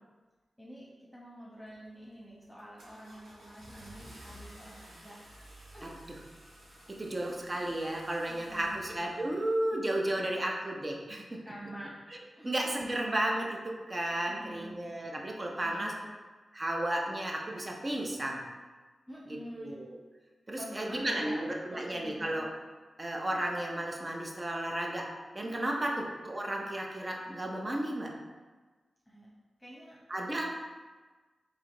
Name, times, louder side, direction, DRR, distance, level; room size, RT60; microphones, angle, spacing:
voice 1, 0.6-5.2 5.7-5.9 7.1-7.2 8.3-8.9 10.1-10.5 11.4-12.0 12.3-12.6 14.2-14.8 15.6-16.1 19.1-19.8 20.6-22.2 25.9-26.0 29.1-29.3 29.6-30.0, equal, 5° left, -6 dB, 1.1 m, -47 dB
Car / Engine starting, 1.6-2.0 2.4-9.4, right 1 dB, 80° right, 0.9 m, -53 dB
voice 2, 7.0-11.4 12.4-15.9 16.5-18.4 19.3-20.0 20.5-22.5 23.0-25.1 25.3-28.1 30.1-30.5, right 1 dB, 35° right, 0 dB, 0.7 m, -33 dB
3.3 x 2.8 x 3.8 m, 1.3 s
cardioid pair, 45°, 0 cm